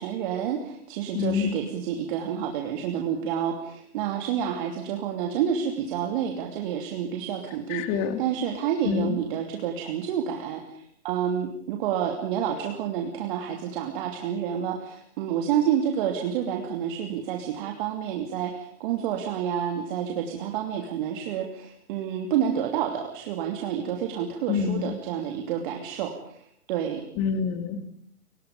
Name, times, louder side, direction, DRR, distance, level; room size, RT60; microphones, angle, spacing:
voice 1, 0.0-27.0, right 9 dB, 35° right, 3 dB, 2.9 m, -29 dB
voice 2, 1.1-1.6 7.7-8.2 8.8-9.2 24.5-24.9 27.2-27.9, left 7 dB, 25° left, 8 dB, 2.7 m, -26 dB
30.0 x 24.5 x 5.3 m, 0.64 s
figure-of-eight pair, 125°, 45 cm